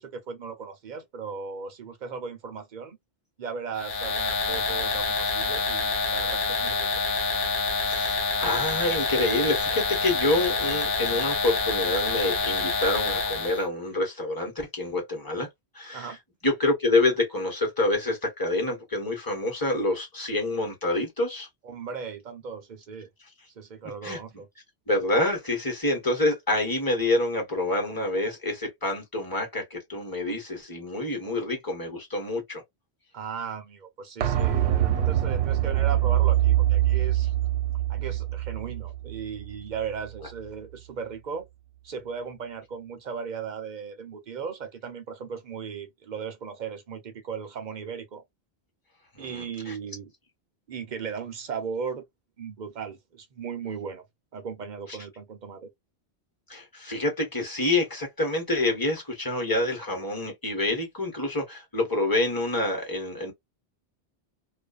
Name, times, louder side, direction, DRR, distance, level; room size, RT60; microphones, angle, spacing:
voice 1, 0.0-3.0 3.4-6.9 15.9-16.2 21.6-23.1 23.6-24.5 33.1-37.3 37.9-41.5 41.8-48.2 49.2-50.1 50.7-52.0 52.4-54.0 54.3-55.7, right 6 dB, 50° right, 0.7 m, -37 dB
sound 1, 3.8-13.6, left 4 dB, 55° left, 0.9 m, -27 dB
voice 2, 7.8-15.5 15.7-16.2 16.4-21.5 24.0-24.2 24.9-32.6 49.1-49.7 56.5-63.3, left 2 dB, 20° left, 1.1 m, -27 dB
sound 2, 34.2-39.8 40.1-40.2, right 12 dB, 85° right, 0.9 m, -24 dB
2.5 x 2.2 x 2.4 m
omnidirectional pair, 1.1 m